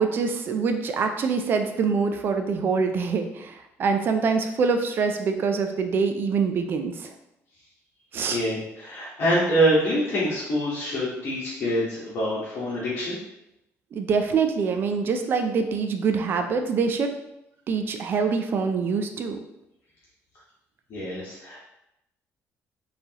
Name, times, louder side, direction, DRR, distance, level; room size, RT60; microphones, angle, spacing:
voice 1, 0.0-7.1 8.1-8.4 13.9-17.1 17.7-19.4, right 5 dB, 40° right, 6 dB, 0.4 m, -25 dB
voice 2, 8.3-13.2 20.9-21.6, equal, 45° left, -8 dB, 1.3 m, -25 dB
4.4 x 3.3 x 2.9 m, 0.86 s
cardioid pair, 155°, 6 cm